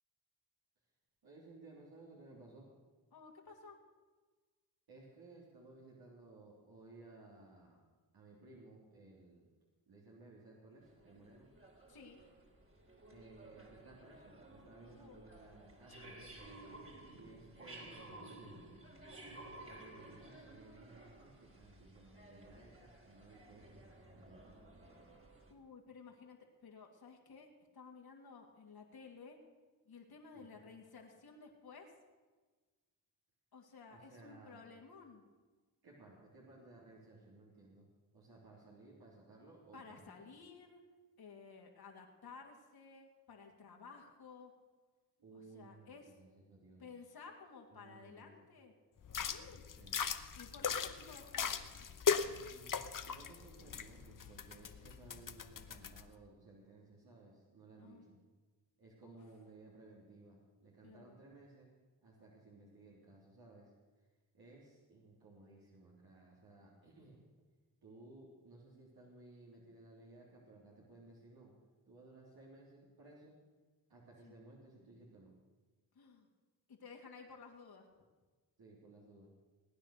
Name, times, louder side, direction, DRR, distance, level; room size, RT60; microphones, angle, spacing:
voice 1, 1.2-2.7 4.9-7.8 8.1-9.5 9.9-11.5 13.1-16.5 17.1-18.8 19.6-23.8 24.1-24.8 30.3-30.6 33.9-34.7 35.8-37.9 38.1-40.1 45.2-46.9 47.7-48.3 49.8-50.1 52.2-58.2 58.8-61.7 62.0-63.7 64.3-67.2 67.8-71.5 71.9-73.4 73.9-75.3 78.6-79.3, right 2 dB, 75° right, -5 dB, 3.5 m, -58 dB
voice 2, 3.1-3.8 11.9-12.2 14.9-15.2 25.5-26.4 26.6-27.5 27.7-29.4 29.9-31.9 33.5-35.2 39.7-40.8 41.2-44.5 45.3-46.0 46.8-48.7 49.1-49.6 50.3-51.6 57.8-58.1 59.0-59.2 60.8-61.2 74.2-74.3 75.9-76.3 76.7-77.9, left 5 dB, 75° left, 1 dB, 2.6 m, -55 dB
sound 1, 10.8-25.5, right 2 dB, 35° right, 3.2 m, -55 dB
sound 2, 49.0-56.0, left 6 dB, 55° left, 1.0 m, -39 dB
19.0 x 9.5 x 6.6 m, 1.3 s
cardioid pair, 60°, 38 cm